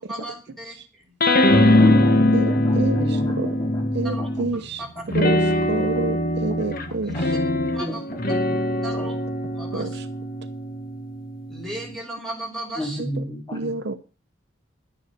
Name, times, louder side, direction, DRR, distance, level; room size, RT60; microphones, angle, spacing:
voice 1, 0.1-0.8 4.0-4.2 4.8-4.9 7.0-7.1 7.7-8.1 8.8-9.2 9.5-10.0 11.5-13.0, right 1 dB, ahead, 0 dB, 5.3 m, -35 dB
sound 1, 1.2-4.6 5.1-11.9, left 1 dB, 45° left, 1.4 m, -21 dB
voice 2, 1.7-3.9 4.2-4.3 5.0-5.1 6.5-8.6 9.0-9.1 12.8-13.7, equal, 20° left, 1 dB, 3.8 m, -33 dB
voice 3, 2.3-3.5 3.9-4.8 5.1-7.3 9.7-10.1 13.0-13.2 13.5-14.0, right 3 dB, 55° right, 11 dB, 0.9 m, -29 dB
11.5 x 9.6 x 6.7 m, 0.35 s
head